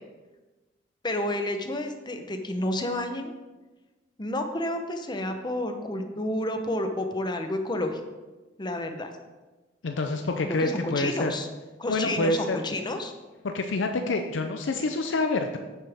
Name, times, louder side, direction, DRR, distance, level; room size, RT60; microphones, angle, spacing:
voice 1, 1.0-3.3 4.2-8.0 8.6-9.1 10.4-11.5 11.8-13.1, left 1 dB, 25° left, 6 dB, 0.8 m, -30 dB
voice 2, 9.8-11.3 11.9-12.6 13.4-15.6, left 2 dB, 85° left, 5 dB, 0.6 m, -27 dB
9.3 x 7.1 x 3.5 m, 1.2 s
head